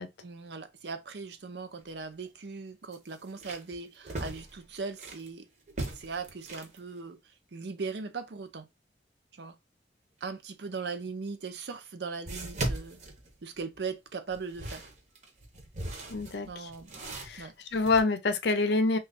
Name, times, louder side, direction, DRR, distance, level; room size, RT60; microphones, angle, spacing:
voice 1, 0.2-5.5 6.0-7.2 7.5-8.7 9.3-9.6 10.2-13.0 13.4-14.9 16.5-16.9 17.4-17.5, right 4 dB, 65° right, 0.6 m, -39 dB
sound 1, 1.7-1.9 2.3-2.4 2.9-5.3 5.7-6.8 11.0-11.1 12.3-13.8 14.3-18.0, right 2 dB, 40° right, 0.8 m, -39 dB
voice 2, 16.1-16.7 17.2-19.0, left 3 dB, 70° left, 0.6 m, -27 dB
3.1 x 2.4 x 3.8 m
head